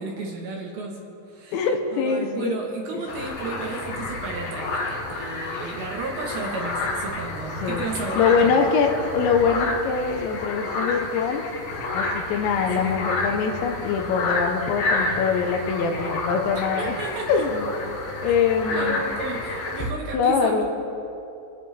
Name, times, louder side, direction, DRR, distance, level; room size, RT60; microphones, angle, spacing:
voice 1, 0.0-8.7 12.8-13.0 16.5-17.4 18.7-20.6, right 3 dB, 65° right, -1 dB, 2.7 m, -33 dB
voice 2, 1.5-2.6 2.9-3.0 7.6-11.4 11.9-17.0 17.3-17.7 18.2-19.0 20.1-20.6, left 5 dB, 80° left, 5 dB, 3.2 m, -23 dB
sound 1, 3.1-19.9, left 2 dB, 60° left, 2.8 m, -30 dB
30.0 x 10.0 x 3.4 m, 2.8 s
omnidirectional pair, 5.3 m